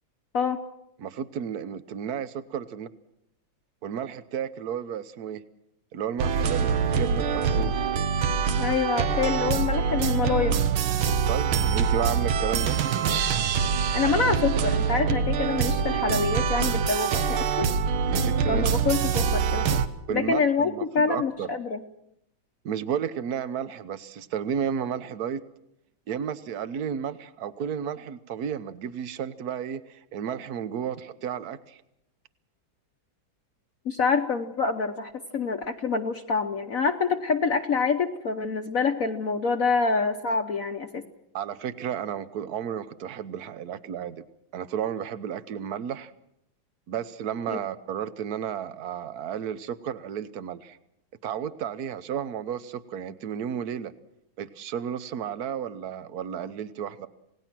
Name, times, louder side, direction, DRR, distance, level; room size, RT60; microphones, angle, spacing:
voice 1, 1.0-2.9 3.8-5.4 5.9-7.9 11.3-12.8 18.1-18.7 20.1-21.5 22.6-25.5 26.1-31.8 41.3-44.2 44.5-46.1 46.9-50.8 51.2-53.9 54.4-57.1, right 8 dB, 55° right, 14 dB, 1.3 m, -32 dB
sound 1, 6.2-19.9, right 6 dB, 90° right, 1.9 m, -25 dB
voice 2, 8.6-10.6 13.9-17.7 18.5-19.8 20.1-21.8 33.8-41.0 47.5-47.6, left 5 dB, 50° left, 6 dB, 1.2 m, -26 dB
28.0 x 18.5 x 6.0 m, 0.81 s
omnidirectional pair, 2.2 m